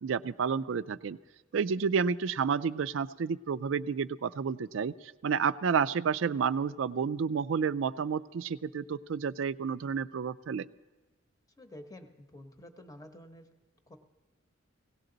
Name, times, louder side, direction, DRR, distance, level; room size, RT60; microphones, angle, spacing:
voice 1, 0.0-1.2 1.5-10.7, right 6 dB, 65° right, 16 dB, 0.4 m, -30 dB
voice 2, 11.6-13.5 13.9-14.0, left 1 dB, 15° left, 6 dB, 1.0 m, -49 dB
17.5 x 17.0 x 3.9 m, 1.2 s
head